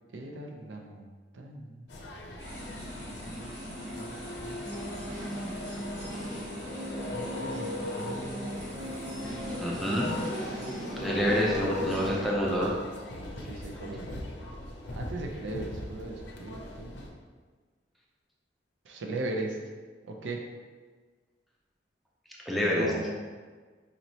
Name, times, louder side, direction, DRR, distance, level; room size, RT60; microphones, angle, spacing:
voice 1, 0.1-1.1 1.3-1.9 3.3-3.5 4.0-4.7 7.1-8.6 9.7-10.1 10.5-11.1 12.7-12.8 13.1-14.1 14.9-16.9 18.9-19.6 20.0-20.5 22.7-23.1, right 2 dB, 85° right, 2 dB, 0.5 m, -39 dB
sound 1, 1.9-17.1, left 2 dB, 70° left, 0.5 m, -39 dB
sound 2, 2.4-10.4, equal, 25° right, 1.2 m, -44 dB
sound 3, 4.6-12.3, equal, 40° right, 1.2 m, -39 dB
voice 2, 9.6-10.3 11.0-12.8 13.7-13.8 22.4-22.9, equal, ahead, -4 dB, 0.5 m, -28 dB
4.1 x 3.0 x 2.7 m, 1.4 s
head